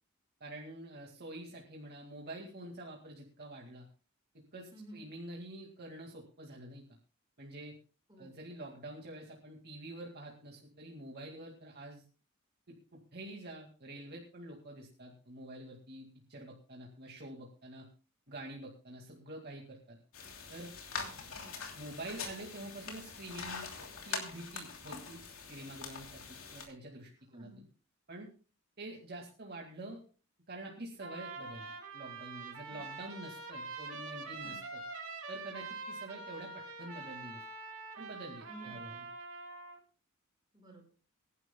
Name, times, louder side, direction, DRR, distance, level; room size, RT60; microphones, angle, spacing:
voice 1, 0.4-3.9 4.5-6.8 7.4-7.7 8.2-12.0 12.7-17.9 18.3-20.0 20.5-20.7 21.7-23.7 24.0-27.6 28.1-28.3 28.8-30.0 30.5-34.8 35.3-37.4 38.0-39.1, right 1 dB, 50° right, 0 dB, 2.1 m, -47 dB
voice 2, 4.7-5.0 8.1-8.5 21.0-21.5 27.3-27.6 32.7-33.1 34.4-34.6 38.4-38.8 40.5-40.9, right 1 dB, 20° right, 0 dB, 5.5 m, -53 dB
sound 1, 20.1-26.7, left 5 dB, 70° left, 3.0 m, -43 dB
Trumpet, 31.0-39.8, right 3 dB, 70° right, 2.9 m, -45 dB
24.5 x 11.0 x 2.2 m, 0.36 s
head